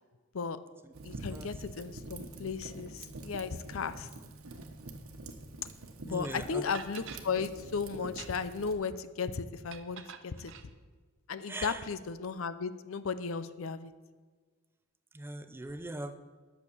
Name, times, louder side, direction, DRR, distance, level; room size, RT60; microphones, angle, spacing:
Fire, 0.9-8.7, right 2 dB, 75° right, 1.1 m, -46 dB
voice 1, 1.0-4.1 6.0-10.5 11.3-13.9, left 5 dB, 70° left, 13 dB, 0.6 m, -35 dB
voice 2, 6.0-6.6 11.5-11.9 15.1-16.1, right 1 dB, 10° right, 10 dB, 0.4 m, -40 dB
sound 1, 6.2-6.3 6.7-7.3 8.0-8.6 9.7-10.7, right 7 dB, 55° right, 0.7 m, -47 dB
11.0 x 6.6 x 7.0 m, 1.4 s
head